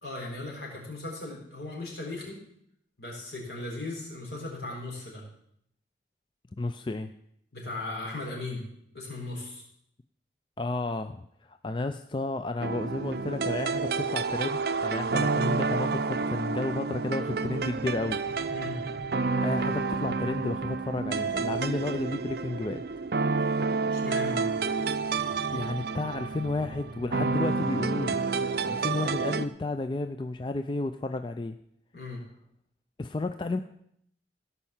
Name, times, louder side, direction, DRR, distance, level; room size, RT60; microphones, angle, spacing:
voice 1, 0.0-2.4 3.0-5.2 7.5-8.6 8.9-9.6 18.5-18.8 23.9-24.5 31.9-32.2, left 2 dB, 70° left, -2 dB, 4.3 m, -37 dB
voice 2, 6.6-7.1 10.6-18.2 19.4-22.8 25.5-28.2 28.6-31.6 33.0-33.6, left 2 dB, 25° left, 9 dB, 0.4 m, -32 dB
sound 1, 12.6-29.5, right 4 dB, 60° right, 0.5 m, -29 dB
16.5 x 5.6 x 7.2 m, 0.72 s
head